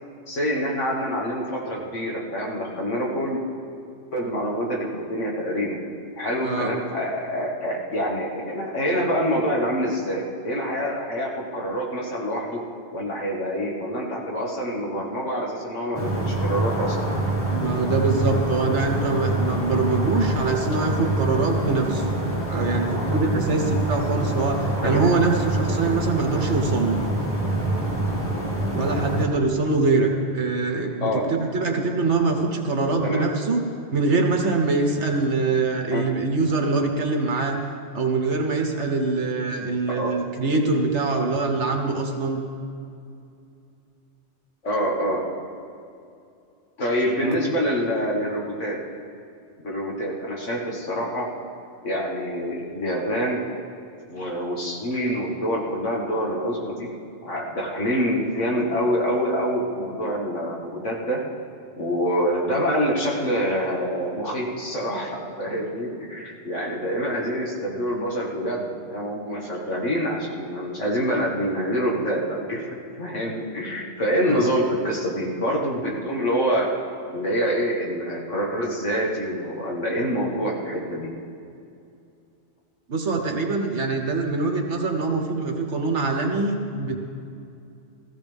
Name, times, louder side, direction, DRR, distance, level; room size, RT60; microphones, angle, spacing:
voice 1, 0.3-3.4 4.1-5.8 6.2-12.6 12.9-17.0 24.8-25.1 31.0-31.2 33.0-33.3 35.9-36.0 39.9-40.1 44.6-45.2 46.8-48.8 49.6-51.3 51.8-53.4 54.1-56.9 57.2-61.2 61.8-72.6 73.0-76.7 77.1-81.1, equal, 85° left, -3 dB, 2.3 m, -26 dB
sound 1, 15.9-29.3, right 1 dB, 10° right, 2.1 m, -26 dB
voice 2, 17.5-22.1 22.5-27.0 28.7-33.6 33.9-37.6 37.9-42.4 47.2-47.4 74.3-74.5 82.9-87.0, right 3 dB, 70° right, 3 dB, 1.5 m, -24 dB
16.0 x 14.5 x 3.5 m, 2.5 s
omnidirectional pair, 1.2 m